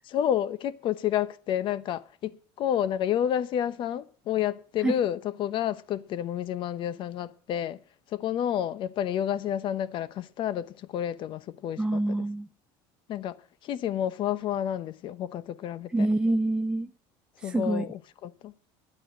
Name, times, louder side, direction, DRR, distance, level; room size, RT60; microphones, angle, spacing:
voice 1, 0.1-7.8 8.1-12.1 13.1-13.4 13.6-16.1 17.4-18.5, left 10 dB, 45° left, 0.9 m, -30 dB
voice 2, 11.8-12.5 15.9-16.9 17.4-17.9, right 2 dB, 5° right, 0.5 m, -26 dB
11.5 x 8.7 x 7.5 m
cardioid pair, 140°, 11 cm